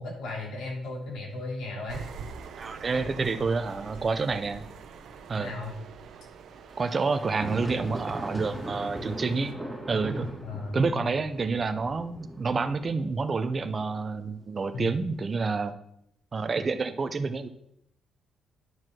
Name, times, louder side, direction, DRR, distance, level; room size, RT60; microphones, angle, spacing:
voice 1, 0.0-2.0 2.9-3.0 5.4-5.7 10.4-11.0 14.7-14.9, left 3 dB, 80° left, -2 dB, 3.0 m, -36 dB
sound 1, 1.9-9.5, right 6 dB, 70° right, 0.8 m, -45 dB
voice 2, 2.6-4.6 5.3-5.5 6.8-9.5 9.9-10.3 10.7-15.7 16.3-17.5, right 4 dB, 35° right, 9 dB, 0.6 m, -28 dB
sound 2, 2.8-6.0 6.7-15.3, right 1 dB, 5° right, 2.4 m, -40 dB
9.4 x 4.7 x 6.1 m, 0.75 s
cardioid pair, 90°, 0 cm